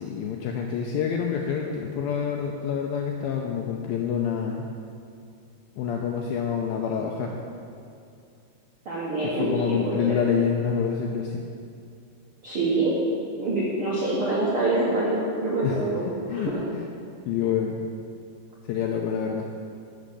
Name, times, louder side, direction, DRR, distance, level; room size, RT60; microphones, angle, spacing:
voice 1, 0.0-4.7 5.8-7.3 9.2-11.4 15.6-15.8 16.3-16.8 17.3-17.8 18.7-19.5, left 7 dB, 90° left, 1 dB, 2.1 m, -27 dB
voice 2, 8.8-10.2 12.4-12.9 13.4-16.6, right 2 dB, 65° right, -7 dB, 1.3 m, -26 dB
11.5 x 6.2 x 6.9 m, 2.4 s
omnidirectional pair, 4.9 m